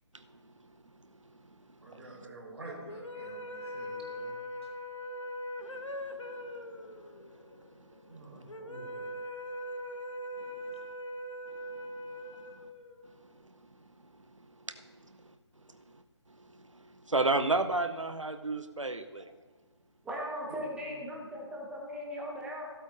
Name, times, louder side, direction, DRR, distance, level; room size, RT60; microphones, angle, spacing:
voice 1, 1.8-4.4 8.1-9.1 20.5-20.6, right 2 dB, 60° right, 0 dB, 4.3 m, -48 dB
sound 1, 2.8-13.3, equal, 75° left, 1.3 m, -41 dB
voice 2, 16.6-19.3, right 2 dB, 85° right, 9 dB, 0.7 m, -31 dB
voice 3, 20.0-22.7, equal, 5° right, -2 dB, 1.4 m, -38 dB
16.0 x 13.0 x 2.6 m, 1.4 s
figure-of-eight pair, 145°, 16 cm